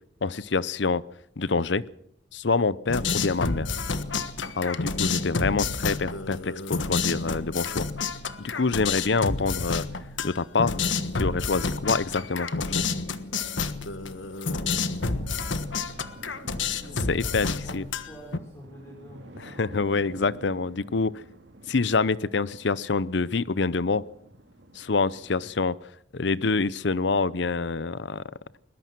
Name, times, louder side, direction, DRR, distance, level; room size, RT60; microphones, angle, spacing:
voice 1, 0.2-1.0 1.4-1.8 2.3-3.7 4.6-7.9 8.4-9.9 10.2-10.8 11.1-12.8 17.1-17.8 19.6-21.2 21.7-24.0 24.7-25.8 26.1-28.2, left 4 dB, 70° left, 19 dB, 0.7 m, -26 dB
sound 1, 2.9-18.4, left 4 dB, 90° left, 1.4 m, -29 dB
sound 2, 6.7-25.5, right 1 dB, 75° right, 2.2 m, -51 dB
voice 2, 15.1-19.8, equal, 20° left, -2 dB, 5.1 m, -48 dB
21.5 x 20.5 x 6.1 m, 0.68 s
head